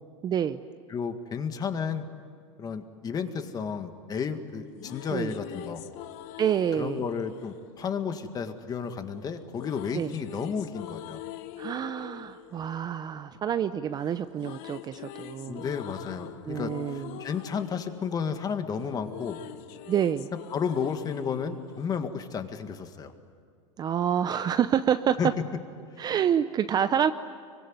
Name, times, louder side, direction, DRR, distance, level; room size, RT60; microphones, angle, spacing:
voice 1, 0.2-0.6 5.1-5.3 6.4-7.0 9.9-10.1 11.6-15.7 16.5-17.2 19.9-20.3 23.8-25.2 26.0-27.1, right 9 dB, 25° right, 11 dB, 0.7 m, -27 dB
voice 2, 0.9-2.1 2.6-5.8 6.8-11.2 15.5-19.4 20.5-23.1 25.2-25.3, left 6 dB, 25° left, 8 dB, 1.9 m, -32 dB
sound 1, 4.5-8.7 9.5-13.8 14.1-22.6, left 13 dB, 50° left, 1.3 m, -44 dB
26.0 x 23.5 x 9.7 m, 2.2 s
supercardioid pair, 135°, 16 cm